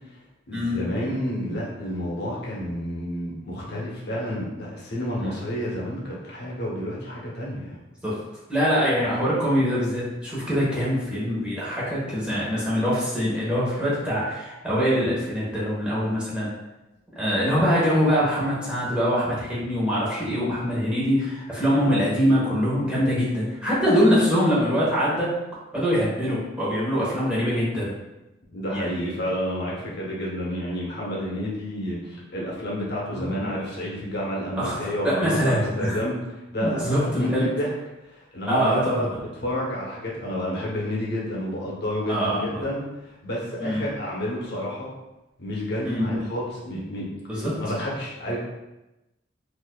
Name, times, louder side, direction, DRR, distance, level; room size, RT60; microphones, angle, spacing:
voice 1, 0.5-7.8 28.5-36.2 36.5-37.7 38.0-39.1 39.4-44.9 45.4-48.4, equal, 60° left, -5 dB, 0.9 m, -30 dB
voice 2, 8.5-16.5 17.1-25.3 25.7-27.9 28.7-29.2 33.1-33.5 34.6-36.0 36.6-37.4 38.5-39.2 42.1-42.7 43.6-43.8 45.8-46.2 47.3-47.7, equal, 5° right, -8 dB, 1.0 m, -24 dB
4.2 x 2.5 x 2.2 m, 0.98 s
head